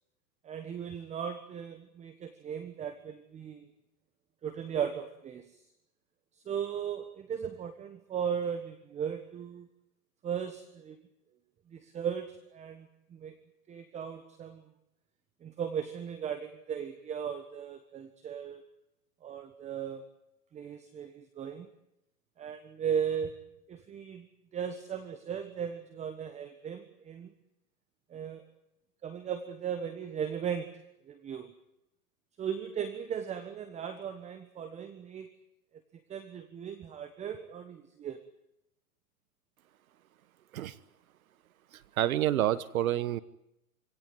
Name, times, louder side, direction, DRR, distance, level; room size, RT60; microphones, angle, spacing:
voice 1, 0.4-3.7 4.4-5.6 6.4-9.7 10.2-11.0 11.7-13.3 13.7-14.6 15.4-18.6 19.2-20.0 20.5-21.7 22.4-23.3 23.7-24.3 24.5-27.3 28.1-28.4 29.0-30.7 31.1-31.5 32.4-35.3 36.1-38.2, right 8 dB, 15° right, 9 dB, 1.3 m, -37 dB
voice 2, 41.7-43.2, right 12 dB, 60° right, 17 dB, 1.3 m, -28 dB
26.5 x 17.5 x 9.4 m, 0.85 s
hypercardioid pair, 135°, 47 cm